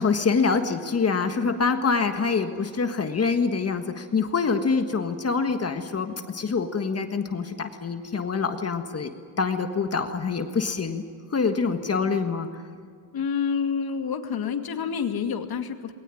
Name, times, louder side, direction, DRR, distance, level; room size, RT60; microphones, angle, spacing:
voice 1, 0.0-9.1 9.4-11.0 11.3-12.6, left 5 dB, 30° left, 7 dB, 1.6 m, -25 dB
voice 2, 13.1-15.9, left 6 dB, 50° left, 6 dB, 2.3 m, -28 dB
21.0 x 19.0 x 9.9 m, 2.2 s
cardioid pair, 120°, 49 cm